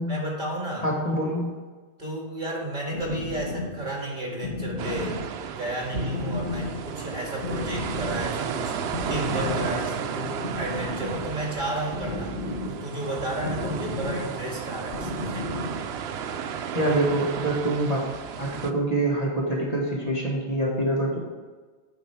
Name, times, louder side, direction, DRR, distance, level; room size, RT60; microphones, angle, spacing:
voice 1, 0.1-0.9 2.0-5.2 5.6-12.4 12.7-15.5, right 1 dB, 50° right, -2 dB, 2.1 m, -32 dB
voice 2, 0.8-1.5 16.7-18.0 18.4-21.2, right 1 dB, 35° left, -3 dB, 1.9 m, -25 dB
sound 1, 2.8-16.0, left 2 dB, 70° left, 1.5 m, -35 dB
sound 2, 4.8-18.7, right 7 dB, 80° right, 0.8 m, -33 dB
8.9 x 5.7 x 4.7 m, 1.4 s
omnidirectional pair, 1.1 m